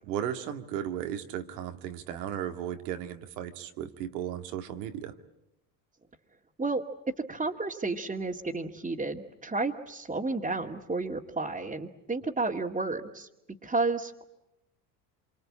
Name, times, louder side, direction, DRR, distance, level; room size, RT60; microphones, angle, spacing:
voice 1, 0.1-5.1, right 10 dB, 85° right, 6 dB, 2.1 m, -35 dB
voice 2, 7.3-13.3 13.6-14.2, right 3 dB, 15° right, -3 dB, 2.2 m, -31 dB
27.0 x 25.0 x 8.7 m, 0.89 s
hypercardioid pair, 80°, 47 cm